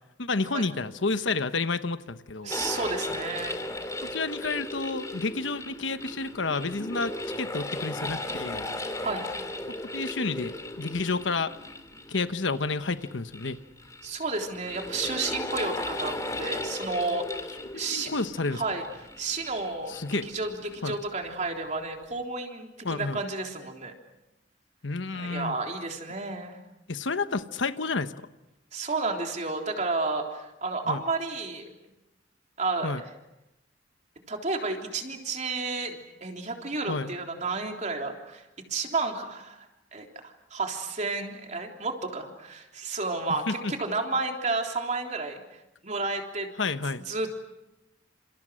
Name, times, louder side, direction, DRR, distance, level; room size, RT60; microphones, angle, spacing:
voice 1, 0.2-2.5 4.0-8.7 9.7-11.5 12.1-13.6 17.7-18.6 19.9-20.3 20.8-21.0 22.8-23.2 24.8-25.6 26.9-28.1 30.9-31.0 32.8-33.0 36.9-37.1 43.5-43.7 46.6-47.0, left 3 dB, 75° left, 11 dB, 1.1 m, -30 dB
voice 2, 2.4-3.6 9.0-9.3 14.0-17.4 17.7-18.1 18.5-18.8 19.2-19.9 20.3-23.9 25.1-26.6 28.7-31.7 32.6-33.1 34.3-38.4 38.7-39.7 39.9-45.4 45.8-46.5 47.1-47.4, right 3 dB, 40° right, 3 dB, 3.6 m, -31 dB
sound 1, 2.5-21.1, left 1 dB, 20° left, 2.3 m, -36 dB
30.0 x 28.0 x 6.4 m, 0.93 s
head